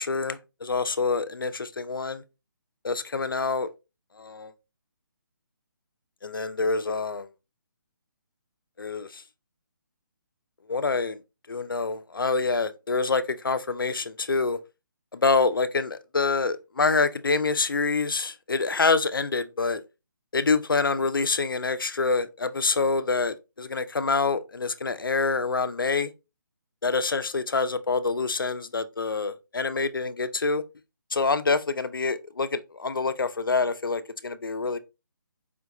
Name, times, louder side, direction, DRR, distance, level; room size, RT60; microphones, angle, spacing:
voice 1, 0.0-2.2 2.8-3.7 4.2-4.5 6.2-7.3 8.8-9.2 10.7-11.2 11.5-14.6 15.1-19.8 20.3-26.1 26.8-30.6 31.1-34.8, left 4 dB, 90° left, 0.5 m, -26 dB
5.0 x 2.3 x 2.9 m
figure-of-eight pair, 150°, 11 cm